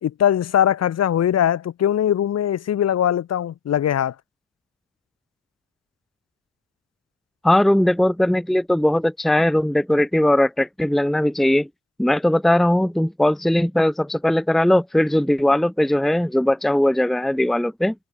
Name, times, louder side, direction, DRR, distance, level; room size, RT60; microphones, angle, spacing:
voice 1, 0.0-4.1, left 10 dB, 60° left, 1.8 m, -21 dB
voice 2, 7.4-11.7 12.0-17.9, left 1 dB, ahead, 0.8 m, -19 dB
cardioid pair, 130°, 30 cm